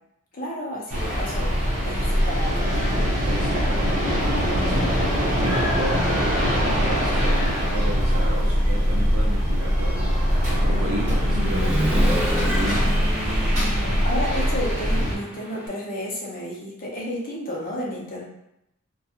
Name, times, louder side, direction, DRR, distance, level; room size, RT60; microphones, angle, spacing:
voice 1, 0.3-1.5 1.8-2.8 13.6-18.2, equal, 40° left, -4 dB, 0.7 m, -32 dB
sound 1, 0.9-15.1, equal, 30° right, 0.9 m, -22 dB
voice 2, 3.3-12.8, right 1 dB, 80° right, -1 dB, 0.5 m, -33 dB
Human voice / Motorcycle, 4.4-4.5 5.0-6.7 7.1-15.7, equal, 5° right, 0.5 m, -32 dB
2.5 x 2.2 x 2.7 m, 0.82 s
head